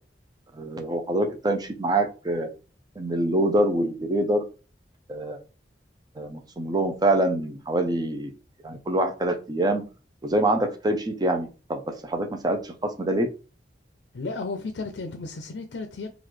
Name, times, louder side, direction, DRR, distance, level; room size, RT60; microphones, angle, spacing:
voice 1, 0.5-2.5 3.0-4.4 5.1-5.4 6.2-8.3 8.6-9.8 10.2-13.3, right 1 dB, 25° right, 0.5 m, -25 dB
voice 2, 14.1-16.1, left 3 dB, 80° left, 0.5 m, -33 dB
3.9 x 2.4 x 3.1 m
head